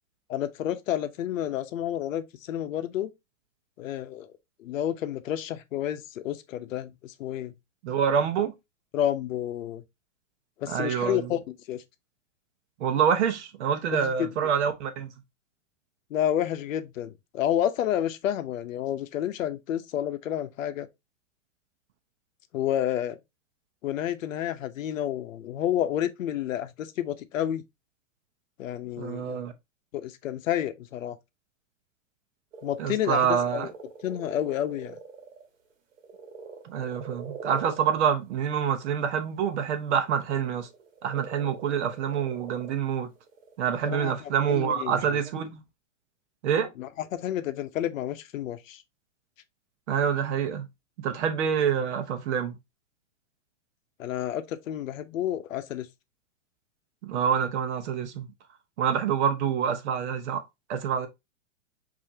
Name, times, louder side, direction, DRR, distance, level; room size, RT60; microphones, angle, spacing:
voice 1, 0.3-3.1 3.8-4.3 4.6-7.5 8.9-9.8 10.6-11.4 11.7-11.8 13.9-14.5 16.1-20.9 22.5-23.2 23.8-27.6 28.6-29.4 29.9-31.2 32.6-33.7 34.0-35.0 43.8-44.2 44.5-45.2 46.8-48.8 54.0-55.9, left 11 dB, 80° left, 0.8 m, -30 dB
voice 2, 7.8-8.5 10.7-11.3 12.8-15.1 29.0-29.5 32.8-33.7 36.6-40.7 41.0-43.1 43.6-45.6 46.4-46.7 49.9-50.7 51.0-52.5 57.0-58.3 58.8-60.4 60.7-61.1, right 8 dB, 60° right, 0.9 m, -26 dB
sound 1, 32.5-38.8 40.0-44.1, right 5 dB, 80° right, 1.3 m, -44 dB
5.0 x 2.7 x 2.7 m
supercardioid pair, 160°, 38 cm